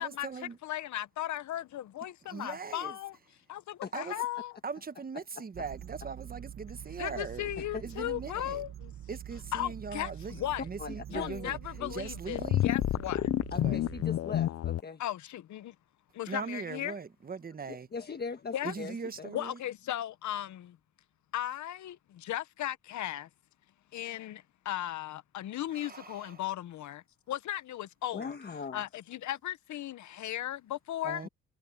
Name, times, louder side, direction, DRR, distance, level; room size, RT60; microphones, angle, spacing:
voice 1, 0.0-0.6 2.3-3.0 3.9-4.2 4.6-7.5 7.8-8.6 9.1-11.6 11.9-12.7 13.5-13.8 16.3-17.9 18.6-19.6 25.7-26.4 31.0-31.3, right 5 dB, 30° right, 1.2 m, -40 dB
voice 2, 0.6-3.2 3.5-4.5 7.0-8.9 9.5-10.6 11.1-13.3 15.0-15.7 16.1-16.9 18.5-18.7 19.3-20.8 21.3-23.3 23.9-28.3 28.7-31.2, left 13 dB, 70° left, 1.0 m, -36 dB
sound 1, 5.5-14.0, right 11 dB, 45° right, 0.6 m, -45 dB
voice 3, 10.6-11.3 11.8-11.9 13.5-15.0 17.7-19.3 28.1-28.8, left 5 dB, 35° left, 1.4 m, -40 dB
sound 2, 12.4-14.8, left 13 dB, 55° left, 0.5 m, -29 dB
cardioid pair, 90°, 30 cm